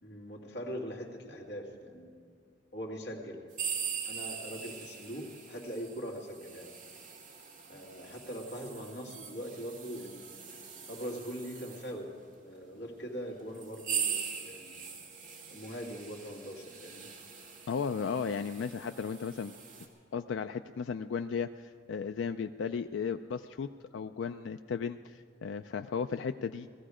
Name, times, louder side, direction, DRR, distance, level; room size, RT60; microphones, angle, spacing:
voice 1, 0.0-2.1 2.7-3.4 4.0-6.7 7.7-10.2 10.8-12.2 12.4-14.1 14.4-14.7 15.5-17.1, equal, 65° left, -1 dB, 2.3 m, -41 dB
sound 1, 3.5-12.0 12.7-12.8 13.5-19.9, right 7 dB, 45° right, 1.7 m, -41 dB
voice 2, 17.7-19.5 20.1-26.7, left 6 dB, 90° left, 8 dB, 0.4 m, -35 dB
18.0 x 14.0 x 4.9 m, 2.2 s
head